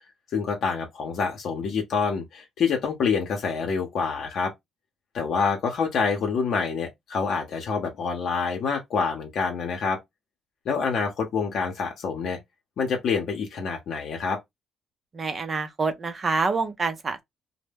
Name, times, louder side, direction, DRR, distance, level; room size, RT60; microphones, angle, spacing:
voice 1, 0.3-4.5 5.1-10.0 10.7-12.4 12.8-14.4, left 5 dB, 70° left, 0.7 m, -27 dB
voice 2, 15.1-17.2, right 4 dB, 40° right, 0.6 m, -27 dB
2.1 x 2.1 x 3.3 m
cardioid pair, 90°, 0 cm